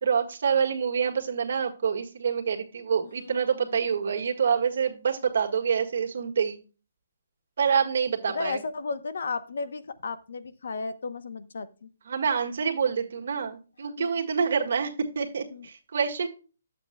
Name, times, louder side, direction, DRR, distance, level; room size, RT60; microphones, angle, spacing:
voice 1, 0.0-6.6 7.6-8.6 12.1-16.3, right 6 dB, 55° right, 3 dB, 1.7 m, -27 dB
voice 2, 3.0-3.7 4.0-4.1 8.3-11.9 14.0-14.1 15.5-15.7, left 4 dB, 65° left, 13 dB, 0.8 m, -34 dB
11.0 x 7.7 x 2.2 m, 0.34 s
hypercardioid pair, 175°, 0 cm